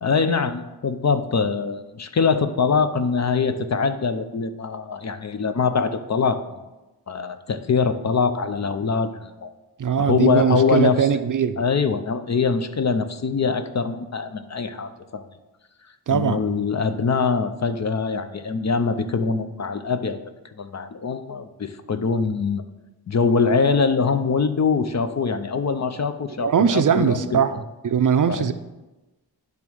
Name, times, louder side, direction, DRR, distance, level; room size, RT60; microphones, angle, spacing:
voice 1, 0.0-6.4 7.1-9.5 10.0-11.0 11.6-15.3 16.1-20.3 20.6-22.6 23.1-27.6 28.3-28.5, left 5 dB, 45° left, 9 dB, 0.5 m, -23 dB
voice 2, 9.8-11.6 16.1-16.5 26.4-28.5, right 7 dB, 50° right, 10 dB, 0.5 m, -21 dB
10.5 x 3.6 x 6.1 m, 1.1 s
wide cardioid pair, 115°, 40 cm